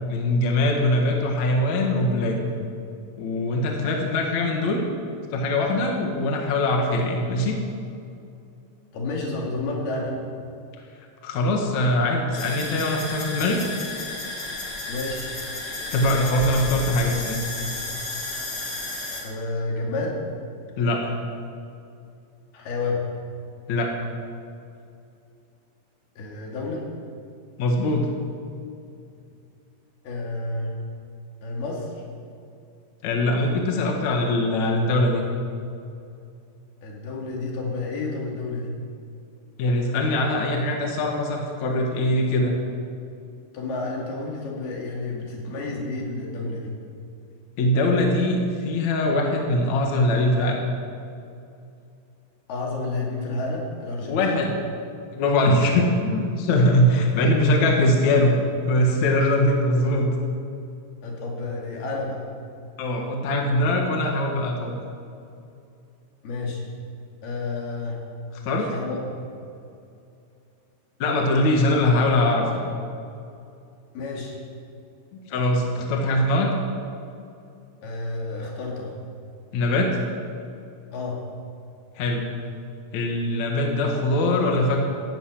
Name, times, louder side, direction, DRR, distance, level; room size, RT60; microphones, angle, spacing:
voice 1, 0.1-2.4 3.2-4.8 5.3-7.6 11.2-13.6 15.9-17.4 20.8-21.2 23.7-23.9 27.6-28.1 33.0-35.2 39.6-42.6 47.6-50.6 54.1-54.5 55.1-58.3 58.7-60.1 62.8-64.8 68.4-68.7 71.0-72.6 75.3-76.5 79.5-79.9 82.0-82.2 82.9-84.8, left 1 dB, 55° left, 1 dB, 2.6 m, -22 dB
voice 2, 8.9-10.2 14.9-15.3 19.2-20.2 22.5-23.0 26.2-26.9 30.0-30.7 31.4-31.9 36.8-38.7 43.5-46.7 52.5-54.4 61.0-62.2 66.2-66.7 67.2-68.0 68.6-69.1 73.9-74.4 77.8-79.0 80.9-81.2, left 3 dB, 70° left, -2 dB, 4.5 m, -30 dB
sound 1, 12.3-19.2, left 2 dB, 30° left, 2.6 m, -32 dB
14.0 x 11.5 x 8.8 m, 2.5 s
omnidirectional pair, 4.7 m